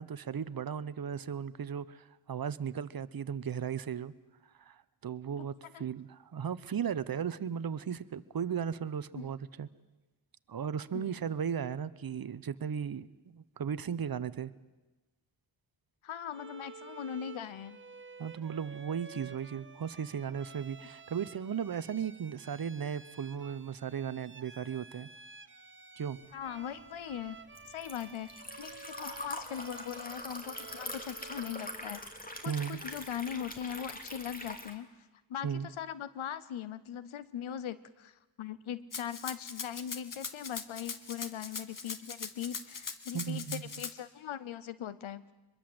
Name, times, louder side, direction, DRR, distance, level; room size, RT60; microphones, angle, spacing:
voice 1, 0.0-4.1 4.6-9.7 10.5-14.5 18.2-25.1 26.0-26.2 32.5-32.8 35.4-35.7 43.1-43.6, right 7 dB, 50° right, 15 dB, 0.9 m, -36 dB
voice 2, 10.9-11.4 16.0-17.8 26.3-27.4 27.7-28.3 28.6-32.0 32.4-34.9 35.3-45.2, left 9 dB, 90° left, 16 dB, 0.9 m, -40 dB
Bowed string instrument, 16.3-32.1, right 4 dB, 25° right, 1.1 m, -52 dB
Liquid, 26.5-34.7, left 1 dB, 20° left, 2.7 m, -43 dB
Rattle (instrument), 38.9-43.9, left 5 dB, 45° left, 1.5 m, -41 dB
23.5 x 22.0 x 7.9 m, 1.1 s
wide cardioid pair, 95°, 47 cm